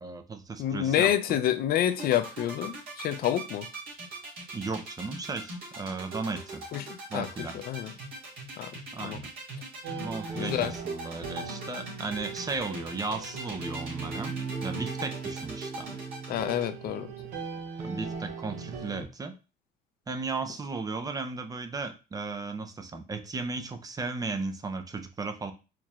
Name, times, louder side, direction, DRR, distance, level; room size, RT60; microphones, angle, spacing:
voice 1, 0.0-1.4 4.5-6.6 7.1-7.6 8.9-9.3 10.0-14.4 14.6-15.9 17.8-19.3 20.1-25.5, right 3 dB, 20° right, 0.5 m, -35 dB
voice 2, 0.6-3.7 6.7-6.9 7.1-7.3 7.7-7.9 8.6-8.7 9.0-9.2 10.4-10.7 16.3-17.1, left 11 dB, 65° left, 0.5 m, -27 dB
sound 1, 1.9-16.7, right 2 dB, 60° right, 2.0 m, -40 dB
sound 2, 9.8-19.0, right 5 dB, 90° right, 0.9 m, -38 dB
4.5 x 3.0 x 2.4 m
cardioid pair, 110°, 17 cm